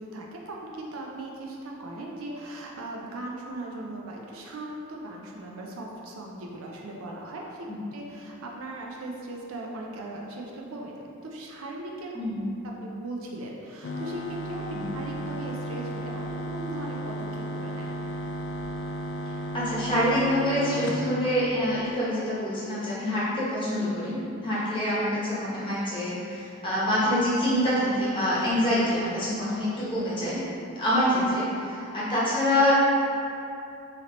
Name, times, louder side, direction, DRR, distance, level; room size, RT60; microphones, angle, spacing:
voice 1, 0.0-10.9 11.2-12.1 12.8-16.2 16.5-18.0, right 2 dB, 80° right, -1 dB, 0.5 m, -38 dB
voice 2, 12.1-12.5 14.7-14.9 19.5-30.4 30.8-32.7, left 1 dB, 25° left, -10 dB, 1.0 m, -26 dB
sound 1, 13.8-21.9, equal, 60° left, 0.4 m, -34 dB
3.1 x 2.9 x 3.8 m, 2.6 s
head